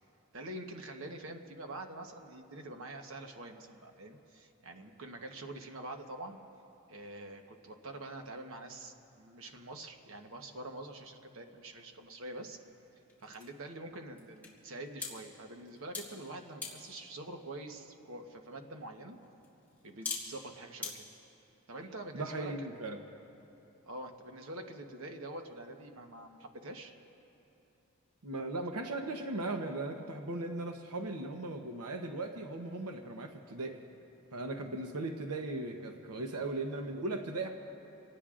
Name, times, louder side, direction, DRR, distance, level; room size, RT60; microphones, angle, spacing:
voice 1, 0.3-6.4 6.9-12.6 13.2-19.2 19.8-21.0 21.7-22.7 23.8-26.9, right 1 dB, 60° right, 4 dB, 1.1 m, -45 dB
sound 1, 12.2-20.9, left 4 dB, 10° left, 3.3 m, -47 dB
voice 2, 22.1-23.0 28.2-33.8 34.3-37.5, right 2 dB, 85° right, 4 dB, 0.9 m, -38 dB
27.0 x 19.0 x 2.5 m, 2.9 s
head